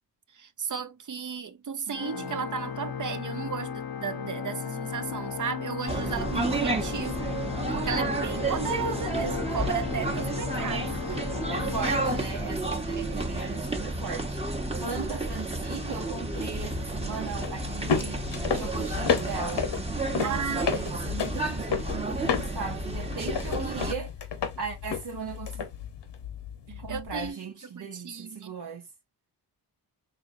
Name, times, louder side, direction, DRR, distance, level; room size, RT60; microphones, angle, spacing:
voice 1, 0.3-7.3 7.7-11.2 13.0-13.1 20.2-20.7 26.9-27.4 27.8-28.5, right 6 dB, 50° right, 0.7 m, -34 dB
Organ, 1.9-13.1, left 7 dB, 65° left, 0.6 m, -35 dB
voice 2, 1.9-2.5 11.5-14.4 14.8-19.7 20.1-24.1 24.6-25.7 26.7-28.9, right 5 dB, 70° right, 1.0 m, -38 dB
sound 1, 5.9-23.9, right 2 dB, 15° right, 0.9 m, -31 dB
sound 2, 16.4-27.3, left 6 dB, 90° left, 0.9 m, -33 dB
4.3 x 3.0 x 2.5 m
cardioid pair, 65°, 41 cm